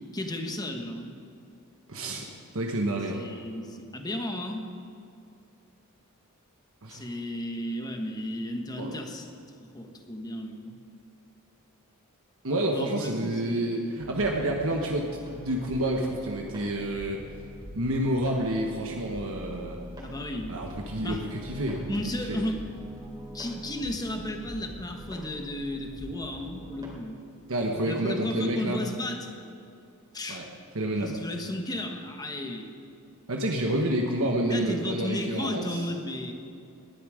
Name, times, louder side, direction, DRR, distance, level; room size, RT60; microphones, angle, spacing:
voice 1, 0.1-1.1 3.1-4.7 6.9-9.3 9.6-10.8 12.7-13.8 20.0-20.6 21.0-21.2 21.9-22.6 23.3-27.1 27.8-29.3 30.1-30.4 31.0-32.7 34.5-36.3, left 1 dB, 15° left, 4 dB, 1.3 m, -34 dB
voice 2, 1.9-2.3 2.5-3.2 6.8-7.0 8.8-9.0 12.4-17.2 17.7-19.8 20.5-21.9 22.3-22.4 27.5-28.8 30.3-30.5 30.7-31.1 33.3-35.9, right 1 dB, 65° right, 1 dB, 1.3 m, -29 dB
sound 1, 14.0-27.0, equal, 20° right, 3.0 m, -44 dB
19.5 x 11.0 x 5.0 m, 2.6 s
head